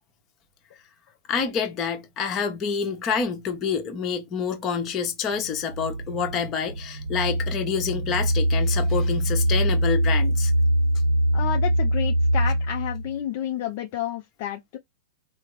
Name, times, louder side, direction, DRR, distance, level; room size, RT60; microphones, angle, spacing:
voice 1, 1.3-10.5, left 6 dB, 30° left, 1.0 m, -27 dB
sound 1, 5.3-13.2, equal, 80° right, 0.6 m, -23 dB
voice 2, 11.3-14.8, left 11 dB, 50° left, 0.4 m, -30 dB
3.4 x 2.0 x 3.2 m
hypercardioid pair, 115°, 0 cm